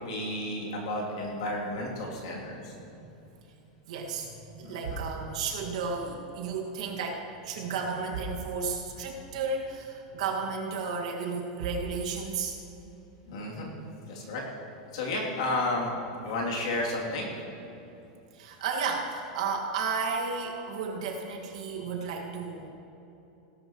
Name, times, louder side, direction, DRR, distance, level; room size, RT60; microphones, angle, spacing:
voice 1, 0.0-2.7 4.6-5.0 13.3-13.7 14.1-14.4 14.9-15.9 16.2-17.3, left 2 dB, 55° left, -3 dB, 3.0 m, -32 dB
sound 1, 3.1-3.5 3.8-4.1 4.6-6.4 6.7-7.4 7.7-7.8 8.0-9.0 9.4-9.5 10.1-10.2 11.2-11.3 11.5-12.6, right 4 dB, 85° right, 2.0 m, -42 dB
voice 2, 3.9-12.6 18.3-22.7, right 4 dB, 65° right, 0 dB, 2.0 m, -33 dB
17.5 x 12.5 x 3.1 m, 2.9 s
supercardioid pair, 180°, 4 cm